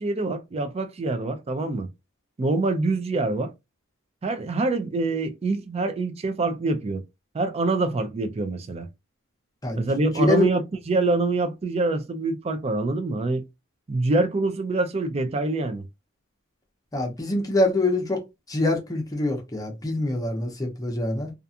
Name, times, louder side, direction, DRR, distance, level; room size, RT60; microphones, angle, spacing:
voice 1, 0.0-1.9 2.4-3.5 4.2-7.0 7.3-8.9 9.7-13.4 13.9-15.9, right 2 dB, 30° right, 0.4 m, -25 dB
voice 2, 16.9-18.2 18.5-21.3, left 2 dB, 15° left, 0.7 m, -24 dB
2.4 x 2.3 x 2.7 m
head